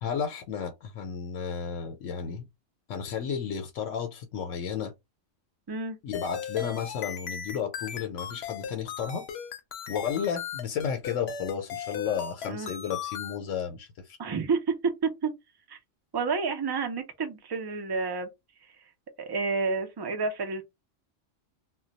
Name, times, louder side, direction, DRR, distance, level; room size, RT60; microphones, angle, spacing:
voice 1, 0.0-2.5 2.9-4.9 6.0-9.2 9.9-14.2, left 7 dB, 90° left, 1.0 m, -33 dB
sound 1, 6.1-13.4, left 7 dB, 65° left, 0.8 m, -37 dB
voice 2, 14.2-14.6 15.2-15.3 15.7-15.8 16.1-18.3 19.2-20.6, right 4 dB, 40° right, 0.3 m, -30 dB
2.2 x 2.2 x 3.9 m
omnidirectional pair, 1.3 m